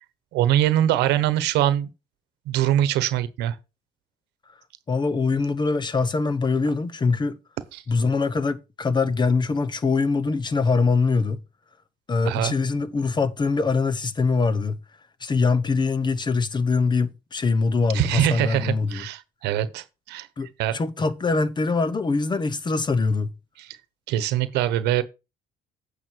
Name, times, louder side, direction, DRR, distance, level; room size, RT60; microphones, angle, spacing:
voice 1, 0.3-1.9 2.5-3.5 7.7-7.8 12.2-12.5 17.9-20.3 20.6-20.8 23.6-23.8 24.1-25.0, right 12 dB, 85° right, 1.1 m, -23 dB
voice 2, 4.9-7.4 7.9-11.4 12.1-14.8 15.2-19.0 20.4-23.4, left 4 dB, 25° left, 0.9 m, -23 dB
9.2 x 5.8 x 4.6 m
cardioid pair, 110°, 17 cm